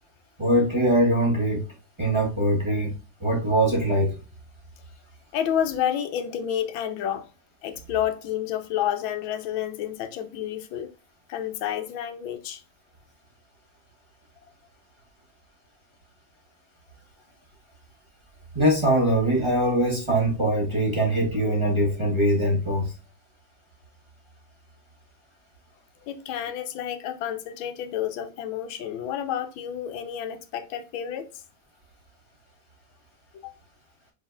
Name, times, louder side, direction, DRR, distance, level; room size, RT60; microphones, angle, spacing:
voice 1, 0.4-1.6 2.0-2.9 3.2-4.1 18.5-22.9, right 1 dB, 15° right, 1.5 m, -22 dB
voice 2, 5.3-7.3 7.6-10.9 11.3-12.6 26.1-31.4 33.3-33.5, left 10 dB, 85° left, 1.5 m, -30 dB
4.9 x 4.1 x 2.3 m
omnidirectional pair, 2.1 m